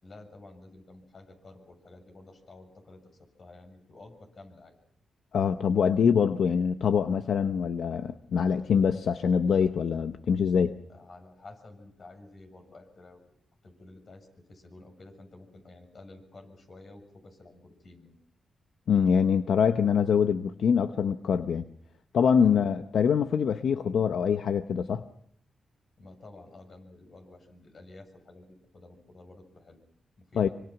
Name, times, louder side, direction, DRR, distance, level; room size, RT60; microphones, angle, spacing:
voice 1, 0.0-4.7 10.9-13.2 13.6-18.2 22.4-22.7 26.0-29.8 30.2-30.5, left 2 dB, 50° left, 5 dB, 7.1 m, -51 dB
voice 2, 5.3-10.8 18.9-21.6 22.1-25.0 30.4-30.5, left 7 dB, 75° left, 9 dB, 0.9 m, -24 dB
25.0 x 25.0 x 6.0 m, 0.70 s
cardioid pair, 75°, 0 cm